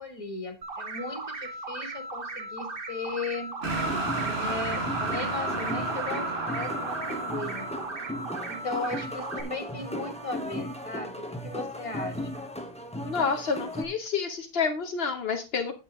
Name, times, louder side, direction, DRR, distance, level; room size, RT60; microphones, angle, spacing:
voice 1, 0.0-3.6 4.4-7.7 8.5-12.5, left 3 dB, 30° left, 5 dB, 2.1 m, -37 dB
sound 1, 0.6-9.4, right 3 dB, 60° right, 1.5 m, -37 dB
sound 2, 3.6-9.7, right 2 dB, 75° right, 1.9 m, -33 dB
sound 3, 3.7-13.8, equal, 5° left, 1.1 m, -37 dB
voice 2, 13.1-15.7, left 5 dB, 70° left, 5 dB, 1.1 m, -29 dB
8.7 x 8.1 x 3.6 m, 0.29 s
omnidirectional pair, 1.0 m